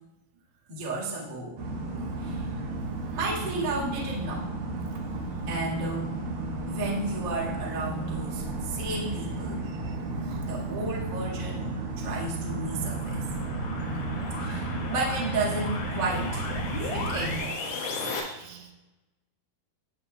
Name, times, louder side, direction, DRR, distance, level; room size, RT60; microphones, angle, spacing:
voice 1, 0.7-1.6 2.2-2.4 3.1-4.5 5.5-6.2 6.7-9.7 10.4-13.2 14.4-16.5 16.8-17.6, right 2 dB, 40° right, -5 dB, 1.7 m, -33 dB
sound 1, 1.6-17.4, right 2 dB, 65° right, 3.3 m, -33 dB
sound 2, 11.7-18.2, left 3 dB, 65° left, 3.0 m, -36 dB
voice 2, 14.2-14.6 17.9-18.7, right 6 dB, 85° right, 2 dB, 3.3 m, -50 dB
15.0 x 6.9 x 2.4 m, 1.0 s
omnidirectional pair, 4.7 m